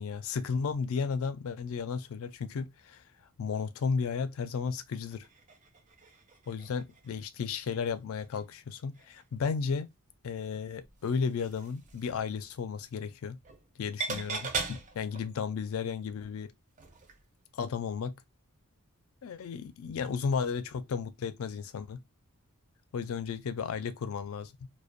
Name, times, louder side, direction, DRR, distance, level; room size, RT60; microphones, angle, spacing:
voice 1, 0.0-3.0 3.4-5.3 6.5-9.9 10.2-13.4 13.8-16.5 17.5-18.1 19.2-22.0 22.9-24.7, left 5 dB, 65° left, 0.4 m, -34 dB
sound 1, 5.1-7.2 7.6-7.8 8.2-9.2 9.6-9.7 10.8-12.2 13.4-13.7 14.0-15.4 16.8-17.2 17.6-17.7, right 4 dB, 35° right, 0.5 m, -40 dB
2.4 x 2.1 x 2.5 m
head